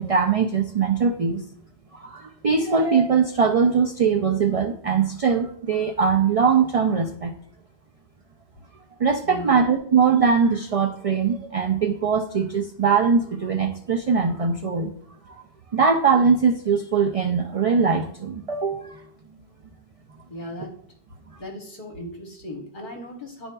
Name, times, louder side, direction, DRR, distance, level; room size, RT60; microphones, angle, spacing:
voice 1, 0.0-1.4 1.9-7.3 9.0-14.9 15.3-15.4 15.7-19.0, right 5 dB, 55° right, 4 dB, 0.4 m, -21 dB
voice 2, 9.2-9.6 20.3-20.7 21.4-23.5, equal, 50° left, 1 dB, 1.1 m, -37 dB
11.0 x 4.2 x 2.2 m, 0.62 s
omnidirectional pair, 1.1 m